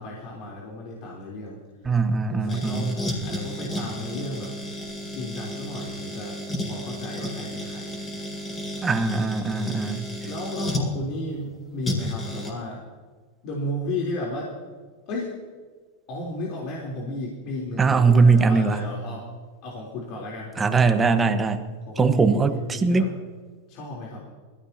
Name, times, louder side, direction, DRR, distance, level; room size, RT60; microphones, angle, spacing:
voice 1, 0.0-1.6 2.3-4.5 5.1-6.4 6.6-7.9 10.3-12.8 13.4-14.5 15.1-15.3 16.1-19.3 19.6-21.2 21.9-23.1 23.7-24.2, left 1 dB, 50° left, -3 dB, 3.6 m, -34 dB
voice 2, 1.8-2.9 8.8-10.0 17.8-18.8 20.6-21.6 22.0-23.1, right 4 dB, 20° right, 8 dB, 1.3 m, -20 dB
sound 1, 2.5-10.9 11.8-12.5, left 1 dB, 20° left, 5.1 m, -32 dB
21.0 x 15.0 x 2.9 m, 1.5 s
hypercardioid pair, 95°, 0 cm